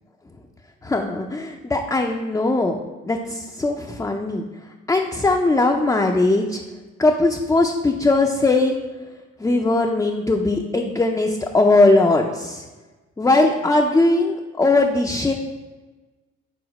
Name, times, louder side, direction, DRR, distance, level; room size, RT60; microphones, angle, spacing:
voice 1, 0.8-2.8 3.1-4.4 4.9-6.6 7.0-8.8 9.4-12.7 13.2-15.3, left 2 dB, 10° left, 1 dB, 0.4 m, -19 dB
4.9 x 3.9 x 5.2 m, 1.2 s
cardioid pair, 90°, 30 cm